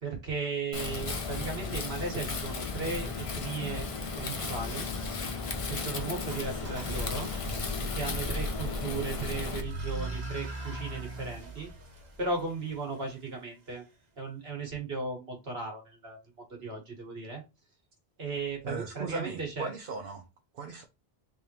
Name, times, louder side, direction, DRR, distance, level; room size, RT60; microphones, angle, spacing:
voice 1, 0.0-3.9 4.1-4.9 5.7-7.3 7.9-11.7 12.2-13.8 14.2-16.2 16.5-17.4 18.2-19.7, right 3 dB, 80° right, 1.7 m, -36 dB
Wind, 0.7-9.6, left 4 dB, 40° left, 0.6 m, -35 dB
sound 1, 6.2-13.1, equal, 45° right, 1.0 m, -38 dB
voice 2, 18.6-20.3 20.5-20.8, right 4 dB, 60° right, 0.8 m, -38 dB
3.5 x 3.5 x 2.9 m
omnidirectional pair, 1.0 m